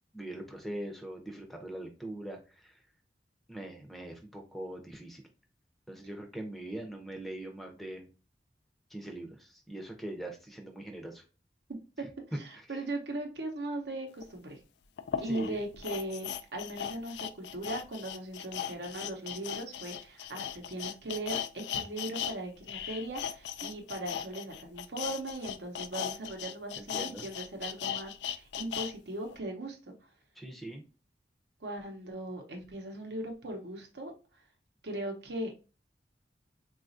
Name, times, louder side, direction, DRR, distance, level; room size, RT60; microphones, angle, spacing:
voice 1, 0.1-2.8 3.5-5.2 5.9-8.1 8.9-11.2 12.6-12.7 15.2-15.6 26.8-27.3 30.4-30.8, right 1 dB, ahead, 0.6 m, -42 dB
voice 2, 12.3-14.6 15.2-29.9 31.6-34.1 34.8-35.5, right 1 dB, 75° right, 0.8 m, -39 dB
sound 1, 14.2-14.3 15.0-22.3 22.6-28.9 29.3-29.4, left 9 dB, 80° left, 0.3 m, -37 dB
4.0 x 2.4 x 2.5 m
head